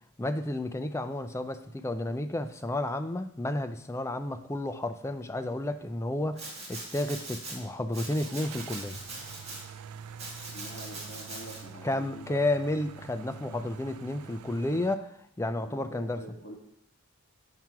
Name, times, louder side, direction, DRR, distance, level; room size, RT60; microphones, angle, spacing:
voice 1, 0.2-9.0 11.8-16.2, left 1 dB, 10° left, 9 dB, 0.4 m, -32 dB
sound 1, 4.9-5.1 5.5-5.6 8.1-14.9, right 8 dB, 80° right, 0.3 m, -47 dB
Domestic sounds home sounds, 6.4-7.6 7.9-9.6 10.2-11.6, right 2 dB, 30° right, 1.7 m, -41 dB
voice 2, 10.5-12.4 15.6-16.5, equal, 35° left, -2 dB, 1.9 m, -46 dB
7.5 x 5.9 x 4.6 m, 0.72 s
head